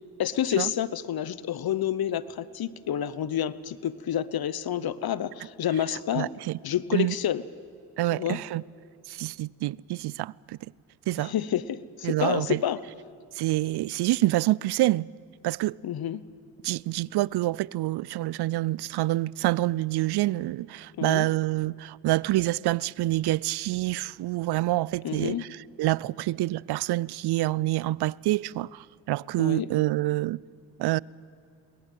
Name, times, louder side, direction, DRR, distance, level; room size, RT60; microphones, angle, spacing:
voice 1, 0.2-6.3 6.6-7.4 8.1-8.4 11.2-12.8 15.8-16.2 21.0-21.3 25.0-25.4 29.4-29.7, left 10 dB, 60° left, 1.0 m, -29 dB
voice 2, 6.1-6.6 6.9-7.2 8.0-8.6 9.1-10.6 11.1-11.3 12.0-12.6 13.3-15.1 15.4-15.8 16.6-30.4 30.8-31.0, right 17 dB, 70° right, 0.5 m, -27 dB
22.5 x 19.5 x 9.3 m
supercardioid pair, 55°, 41 cm